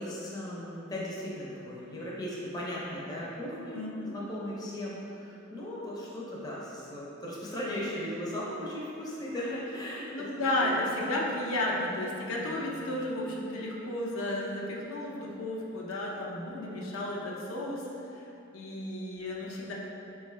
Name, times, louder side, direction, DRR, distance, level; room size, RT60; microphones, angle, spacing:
voice 1, 0.0-10.3 10.6-10.9 12.4-12.9, left 1 dB, 20° left, -6 dB, 0.5 m, -37 dB
voice 2, 3.7-4.2 10.1-17.9 18.1-18.3 18.5-19.7, left 1 dB, 90° left, -3 dB, 0.5 m, -33 dB
3.5 x 2.3 x 3.1 m, 2.7 s
head